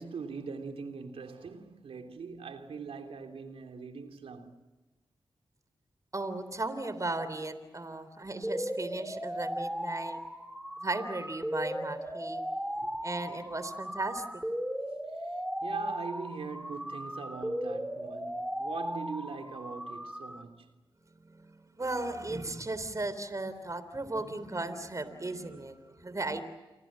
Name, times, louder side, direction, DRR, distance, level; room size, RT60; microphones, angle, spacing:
voice 1, 0.0-4.5 12.8-12.9 15.6-20.6, right 5 dB, 80° right, 3.2 m, -41 dB
voice 2, 6.1-10.2 10.8-12.4 13.0-14.2 21.3-26.4, right 2 dB, 35° right, 3.5 m, -36 dB
sound 1, 8.4-20.4, equal, 5° right, 3.0 m, -37 dB
29.5 x 24.5 x 7.5 m
cardioid pair, 45°, 10 cm